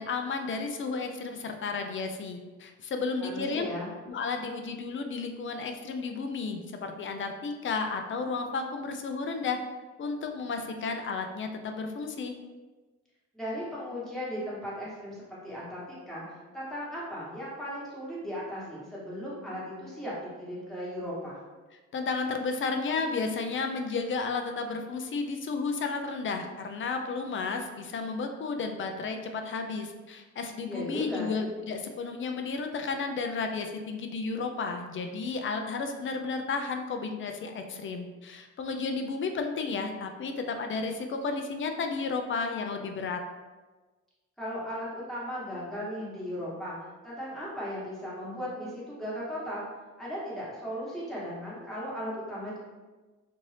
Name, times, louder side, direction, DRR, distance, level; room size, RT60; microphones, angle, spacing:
voice 1, 0.0-3.7 4.1-9.6 10.0-12.3 21.9-43.2, left 4 dB, 40° left, 5 dB, 0.4 m, -33 dB
voice 2, 3.2-3.9 13.3-21.4 30.7-31.3 44.4-46.8 47.0-49.7 50.0-52.6, equal, ahead, -8 dB, 1.3 m, -37 dB
2.6 x 2.6 x 3.2 m, 1.3 s
cardioid pair, 90°, 30 cm